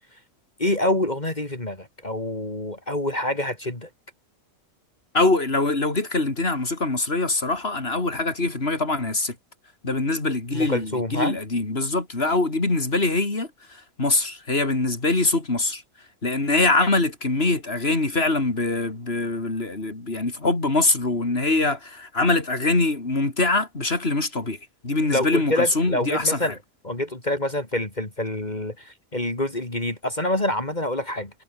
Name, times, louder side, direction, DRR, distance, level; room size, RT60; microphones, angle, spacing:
voice 1, 0.6-3.9 10.5-11.4 25.1-26.6 26.8-31.3, left 1 dB, 30° left, 3.4 m, -26 dB
voice 2, 5.1-9.4 9.8-13.5 14.0-15.8 16.2-24.6 24.8-26.5, left 2 dB, 50° left, 4.0 m, -23 dB
omnidirectional pair, 1.4 m